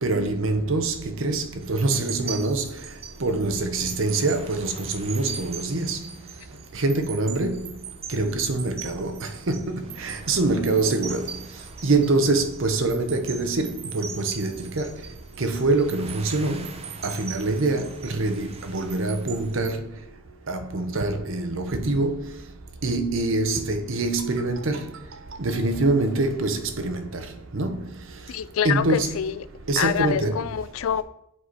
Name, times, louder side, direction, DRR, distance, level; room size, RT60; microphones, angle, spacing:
voice 1, 0.0-2.8 3.2-6.0 6.7-7.7 8.1-11.4 11.8-15.0 15.4-16.7 17.0-19.9 20.5-22.4 22.8-25.0 25.4-27.9 28.6-29.1 29.7-30.4, right 2 dB, 65° right, 0.8 m, -25 dB
sound 1, 1.6-19.7, right 7 dB, 30° right, 0.6 m, -40 dB
voice 2, 28.3-29.5 29.8-31.0, left 8 dB, 70° left, 0.3 m, -26 dB
7.5 x 4.3 x 4.6 m
head